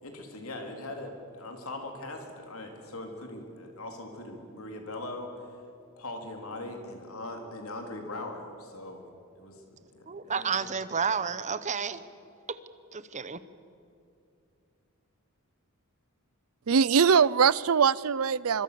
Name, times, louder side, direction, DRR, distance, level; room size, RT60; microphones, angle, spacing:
voice 1, 0.0-5.5 6.0-9.0 9.4-9.6 9.9-10.7, left 2 dB, 70° left, 3 dB, 3.9 m, -40 dB
voice 2, 10.1-12.0 12.5-12.6 12.9-13.4, right 6 dB, 35° right, 14 dB, 1.0 m, -31 dB
voice 3, 16.7-18.6, right 6 dB, 70° right, 21 dB, 0.6 m, -22 dB
25.0 x 24.0 x 7.0 m, 2.6 s
head